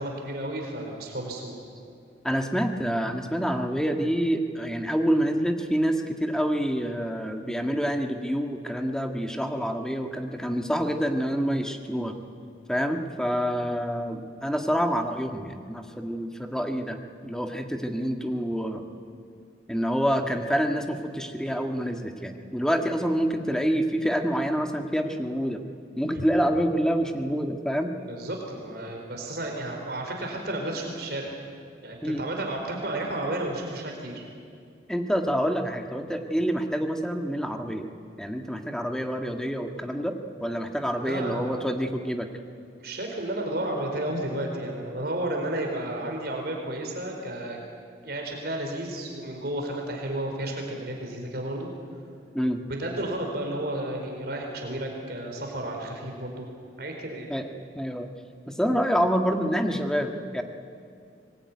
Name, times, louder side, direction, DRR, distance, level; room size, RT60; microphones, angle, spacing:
voice 1, 0.0-1.6 26.1-26.2 28.0-31.3 31.8-34.2 41.0-41.6 42.8-47.6 48.0-51.7 52.7-56.5 56.8-57.3, right 1 dB, 55° right, 1 dB, 4.5 m, -32 dB
voice 2, 2.2-12.1 12.7-18.8 19.7-25.6 26.0-27.9 32.0-32.2 34.9-37.9 38.2-42.3 52.3-52.6 57.3-57.5 57.7-58.1 58.5-60.4, equal, 5° left, 4 dB, 1.6 m, -27 dB
25.0 x 20.0 x 9.7 m, 2.4 s
head